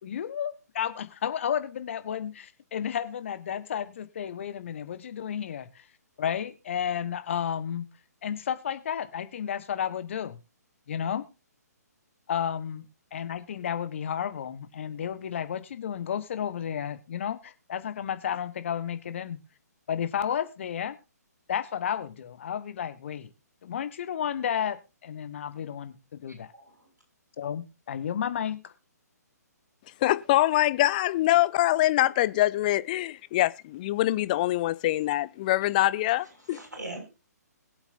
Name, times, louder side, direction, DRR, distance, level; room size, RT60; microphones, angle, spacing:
voice 1, 0.0-5.9 6.2-7.8 8.2-10.4 10.9-11.2 12.3-12.8 13.1-19.4 19.9-20.9 21.5-23.3 23.6-26.5 27.4-28.7, left 8 dB, 45° left, 1.5 m, -32 dB
voice 2, 26.5-26.9 35.6-35.7 36.2-37.1, right 2 dB, 80° right, 7.1 m, -42 dB
voice 3, 30.0-36.6, left 15 dB, 30° left, 0.5 m, -24 dB
21.5 x 8.0 x 2.7 m
figure-of-eight pair, 130°, 9 cm